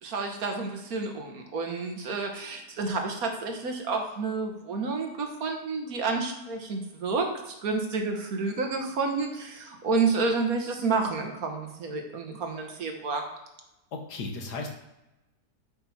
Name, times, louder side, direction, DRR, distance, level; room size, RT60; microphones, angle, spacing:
voice 1, 0.0-13.2, right 4 dB, 60° right, 3 dB, 1.7 m, -30 dB
voice 2, 13.9-14.7, left 3 dB, 70° left, 2 dB, 1.8 m, -35 dB
9.8 x 5.9 x 4.2 m, 0.94 s
omnidirectional pair, 1.9 m